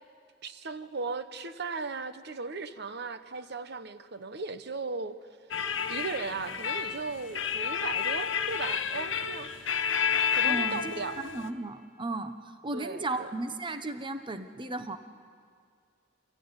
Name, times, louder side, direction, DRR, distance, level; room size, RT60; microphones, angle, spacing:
voice 1, 0.4-5.2 5.9-9.5 10.3-11.2 12.7-13.3, right 4 dB, 60° right, 11 dB, 1.0 m, -37 dB
sound 1, 5.5-11.5, left 7 dB, 70° left, 1.2 m, -30 dB
voice 2, 10.4-10.9 11.2-15.0, right 2 dB, 25° right, 9 dB, 0.9 m, -35 dB
28.5 x 14.5 x 9.7 m, 2.2 s
head